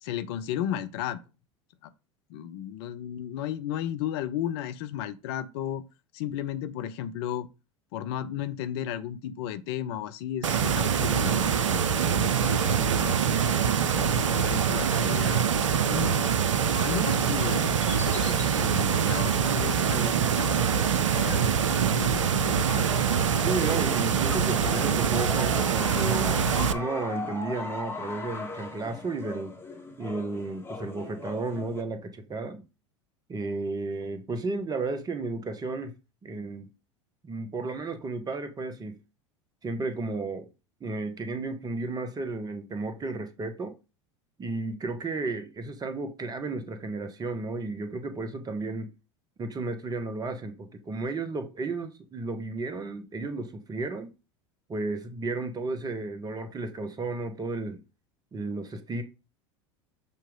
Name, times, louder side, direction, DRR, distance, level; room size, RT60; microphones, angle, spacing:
voice 1, 0.0-1.2 2.3-5.8 6.1-7.5 7.9-11.8 12.1-13.2 13.6-15.5 15.8-16.3 16.7-21.5 21.9-22.9, left 10 dB, 60° left, 0.6 m, -34 dB
sound 1, 10.4-26.7, right 7 dB, 80° right, 0.5 m, -24 dB
sound 2, 17.1-22.6, left 3 dB, 85° left, 1.2 m, -49 dB
sound 3, 22.8-31.8, left 3 dB, 15° left, 1.8 m, -38 dB
voice 2, 23.4-29.6 30.0-32.6 33.3-35.9 36.2-36.7 37.2-39.0 39.6-40.5 40.8-43.7 44.4-48.9 49.4-54.1 54.7-57.8 58.3-59.0, right 3 dB, 25° right, 1.2 m, -33 dB
6.8 x 3.0 x 5.0 m
figure-of-eight pair, 80°, 16 cm